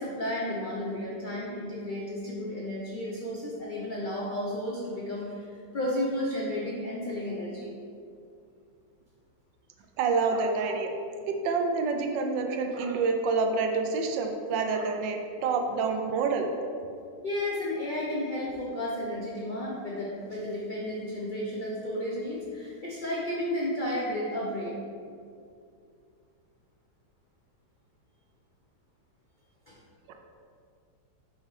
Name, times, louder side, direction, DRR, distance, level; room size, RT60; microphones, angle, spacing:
voice 1, 0.0-7.7 17.2-24.8 29.7-29.8, left 1 dB, 60° left, -5 dB, 0.5 m, -33 dB
voice 2, 10.0-10.9 11.3-16.5 30.1-30.2, right 4 dB, 85° right, 4 dB, 1.3 m, -27 dB
6.0 x 5.6 x 3.2 m, 2.3 s
omnidirectional pair, 1.9 m